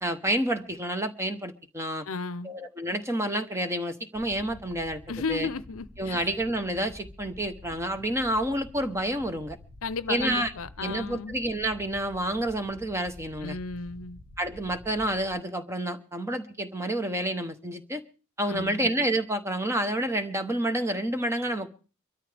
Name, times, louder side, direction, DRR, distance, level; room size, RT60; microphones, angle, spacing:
voice 1, 0.0-2.1 2.4-5.0 5.3-5.5 6.0-9.6 10.1-10.5 10.8-13.6 14.4-18.0 18.4-21.7, right 1 dB, 10° right, 1.0 m, -29 dB
voice 2, 2.0-2.5 5.1-6.3 9.8-11.4 13.4-14.2 18.5-18.8, left 4 dB, 70° left, 0.7 m, -34 dB
sound 1, 4.1-15.3, left 1 dB, 85° right, 3.4 m, -49 dB
24.0 x 13.0 x 3.4 m
head